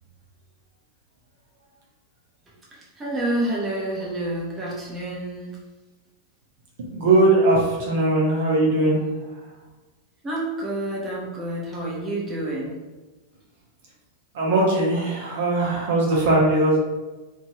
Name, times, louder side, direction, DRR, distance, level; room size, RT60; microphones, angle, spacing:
voice 1, 2.7-5.6 10.2-12.7, right 1 dB, 15° right, -5 dB, 0.8 m, -28 dB
voice 2, 6.9-9.0 14.3-16.8, right 2 dB, 55° right, -4 dB, 0.8 m, -20 dB
2.6 x 2.6 x 3.1 m, 1.2 s
figure-of-eight pair, 90°, 0 cm